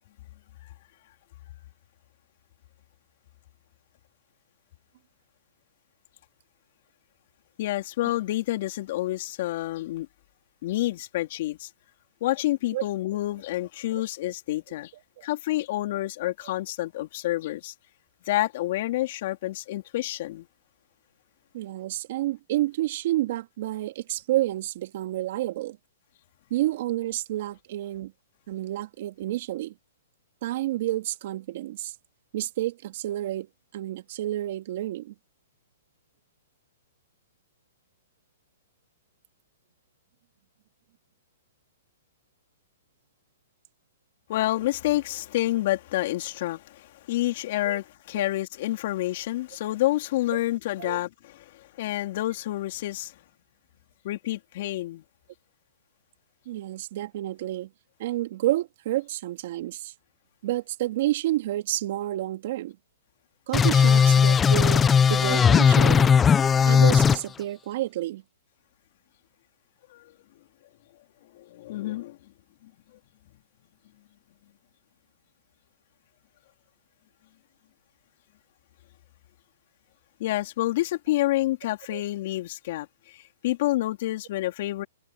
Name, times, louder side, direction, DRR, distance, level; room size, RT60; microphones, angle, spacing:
voice 1, 7.6-10.1 10.6-11.7 12.2-14.9 15.2-17.7 18.3-20.5 44.3-53.1 54.0-55.0 69.9-70.1 71.3-72.2 72.6-72.7 80.2-84.9, left 16 dB, 50° left, 4.1 m, -28 dB
voice 2, 21.5-25.8 26.5-28.1 28.5-29.7 30.4-31.9 32.3-33.5 33.7-35.1 47.6-47.8 48.1-48.3 50.3-50.4 50.8-51.0 56.5-57.7 58.0-59.9 60.4-62.8 63.5-66.1 66.7-68.2 81.9-82.0, right 15 dB, 55° right, 2.6 m, -29 dB
sound 1, 63.5-67.2, left 6 dB, 15° left, 0.9 m, -18 dB
hypercardioid pair, 140°, 0 cm